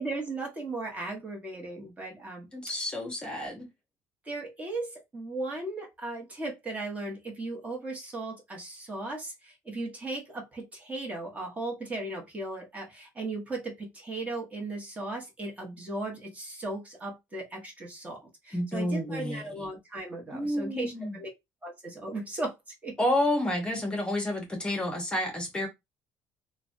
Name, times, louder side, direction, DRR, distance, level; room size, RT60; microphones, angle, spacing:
voice 1, 0.0-2.5 4.2-21.3 21.6-22.6 22.8-23.0, right 2 dB, 20° right, 1.1 m, -37 dB
voice 2, 2.5-3.7 18.5-19.7 20.3-21.2 23.0-25.7, left 1 dB, 15° left, 0.8 m, -30 dB
3.2 x 2.2 x 2.5 m
cardioid pair, 115°, 7 cm